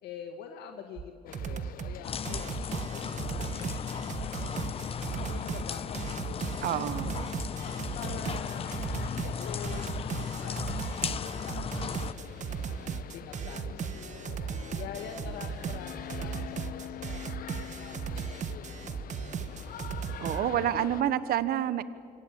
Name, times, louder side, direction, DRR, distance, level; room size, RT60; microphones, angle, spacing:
voice 1, 0.0-4.8 5.2-5.8 6.1-7.2 7.9-8.7 8.9-10.9 11.2-14.5 14.7-19.8, left 7 dB, 80° left, 5 dB, 1.9 m, -46 dB
sound 1, 1.0-1.1 1.3-2.0 2.3-20.4, right 7 dB, 45° right, 1.2 m, -37 dB
sound 2, 1.3-21.0, left 11 dB, 60° left, 1.0 m, -45 dB
sound 3, 2.0-12.1, left 7 dB, 35° left, 0.7 m, -36 dB
voice 2, 6.6-7.3 20.2-21.8, right 11 dB, 65° right, 15 dB, 1.1 m, -28 dB
25.5 x 25.0 x 8.4 m, 2.3 s
cardioid pair, 110°, 17 cm